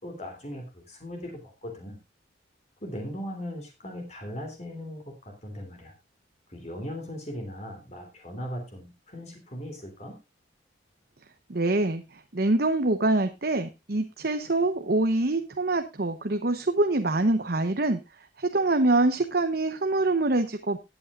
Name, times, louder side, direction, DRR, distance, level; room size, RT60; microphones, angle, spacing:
voice 1, 0.0-2.0 2.8-5.9 6.5-10.2, equal, 35° left, 3 dB, 3.2 m, -38 dB
voice 2, 11.5-18.0 18.4-20.8, right 2 dB, 55° right, 7 dB, 0.9 m, -25 dB
18.5 x 8.5 x 2.5 m, 0.24 s
head